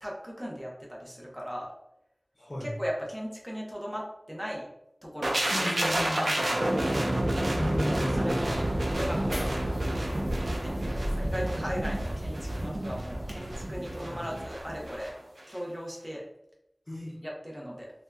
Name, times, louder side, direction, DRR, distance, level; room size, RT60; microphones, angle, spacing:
voice 1, 0.0-1.7 2.6-4.7 5.0-5.7 6.0-6.3 6.8-7.0 8.2-8.6 8.9-9.6 10.5-15.1 15.5-16.2 17.2-17.9, equal, 5° right, -2 dB, 0.8 m, -37 dB
voice 2, 2.4-2.7 5.5-6.6 7.5-8.7 14.1-14.2 16.9-17.1, equal, 40° left, -6 dB, 0.8 m, -35 dB
sound 1, 5.2-15.1 15.4-15.6, right 1 dB, 80° right, 0.5 m, -29 dB
sound 2, 8.2-15.1, equal, 40° right, 0.9 m, -40 dB
2.7 x 2.2 x 3.3 m, 0.82 s
wide cardioid pair, 50°, 0 cm